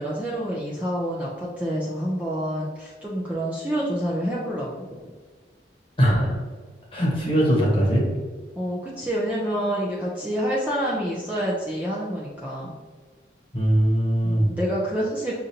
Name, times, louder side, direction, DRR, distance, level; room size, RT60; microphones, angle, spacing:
voice 1, 0.0-4.9 8.6-12.7 14.2-15.4, equal, 10° right, -6 dB, 0.5 m, -27 dB
voice 2, 6.0-6.4 6.9-8.0 13.5-14.6, equal, 30° left, -4 dB, 1.1 m, -20 dB
6.5 x 2.6 x 2.8 m, 1.4 s
head